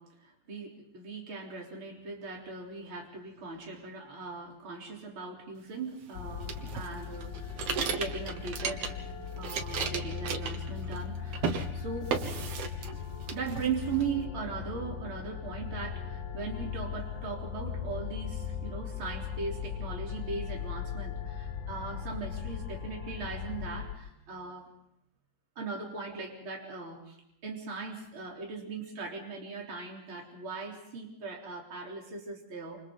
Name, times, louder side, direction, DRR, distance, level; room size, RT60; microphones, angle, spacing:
voice 1, 0.0-8.9 9.4-12.1 13.3-24.7 25.6-27.2 27.4-32.8, right 5 dB, 40° right, -1 dB, 4.4 m, -39 dB
sound 1, 6.1-23.9, left 7 dB, 65° left, 1.1 m, -38 dB
sound 2, 6.5-9.1 9.4-11.1 11.3-11.7 12.1-13.0 13.3-14.1, right 6 dB, 55° right, 2.3 m, -34 dB
28.5 x 28.0 x 3.9 m, 0.77 s
omnidirectional pair, 3.6 m